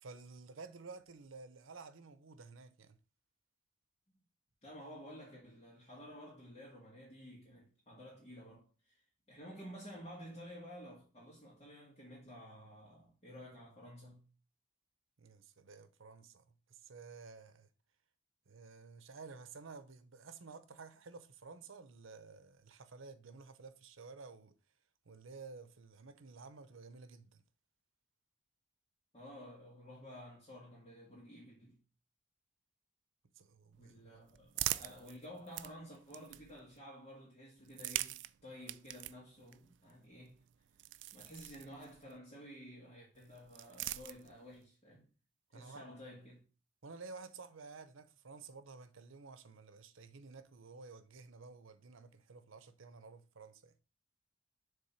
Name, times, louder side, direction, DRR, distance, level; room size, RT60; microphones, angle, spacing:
voice 1, 0.0-3.0 15.2-17.7 18.5-24.6 25.0-27.4 33.3-34.0 45.5-45.9 46.8-53.7, right 4 dB, 90° right, 0.8 m, -53 dB
voice 2, 4.6-14.3 29.1-31.8 33.6-40.4 41.1-45.1 45.5-46.4, equal, 30° left, 1.9 m, -52 dB
sound 1, 33.7-36.8 37.6-42.2 43.1-44.6, right 15 dB, 65° right, 0.3 m, -44 dB
7.0 x 3.5 x 5.7 m
head